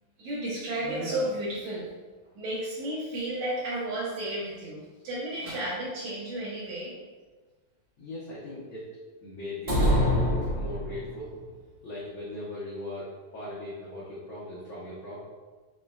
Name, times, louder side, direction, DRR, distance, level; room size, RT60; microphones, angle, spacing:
voice 1, 0.2-1.9 2.4-7.0, right 1 dB, 80° right, -8 dB, 2.2 m, -32 dB
voice 2, 8.0-8.9 9.2-10.2 10.5-11.3 11.8-15.2, left 1 dB, 75° left, -8 dB, 1.1 m, -39 dB
sound 1, 9.7-11.3, equal, 65° right, 0.5 m, -25 dB
5.6 x 3.1 x 2.3 m, 1.3 s
omnidirectional pair, 3.4 m